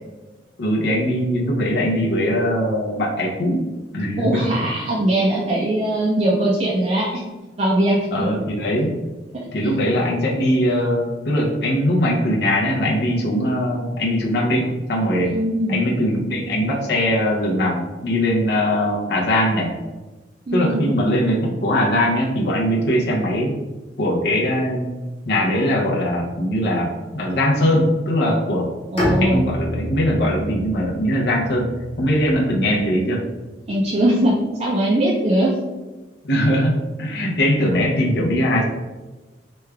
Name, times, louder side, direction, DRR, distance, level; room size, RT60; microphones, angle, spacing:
voice 1, 0.6-3.6 3.9-4.5 8.1-9.0 9.5-15.4 15.7-19.7 20.5-23.6 24.0-24.9 25.3-28.7 29.2-31.7 32.0-33.2 36.2-38.6, equal, 65° left, -3 dB, 0.6 m, -21 dB
voice 2, 4.2-7.2 7.6-8.3 15.3-15.9 20.5-20.9 28.9-29.4 33.7-34.3 34.6-35.5, right 1 dB, 35° right, -4 dB, 0.4 m, -20 dB
Bowed string instrument, 29.0-32.9, left 1 dB, 35° left, 1.1 m, -27 dB
3.1 x 2.3 x 3.3 m, 1.2 s
head